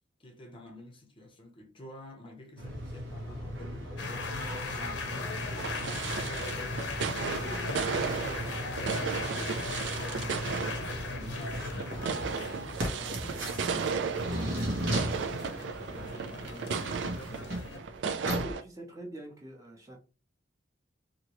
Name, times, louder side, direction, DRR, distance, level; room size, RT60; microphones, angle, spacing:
voice 1, 0.2-11.6 12.0-17.1, left 1 dB, 30° left, 0.7 m, -49 dB
sound 1, 2.6-18.5, equal, 90° right, 1.0 m, -37 dB
sound 2, 4.0-17.8, left 4 dB, 70° left, 0.7 m, -39 dB
sound 3, 5.6-18.6, right 5 dB, 70° right, 0.4 m, -35 dB
voice 2, 18.4-20.0, right 1 dB, 20° right, 0.8 m, -44 dB
2.9 x 2.8 x 3.0 m
head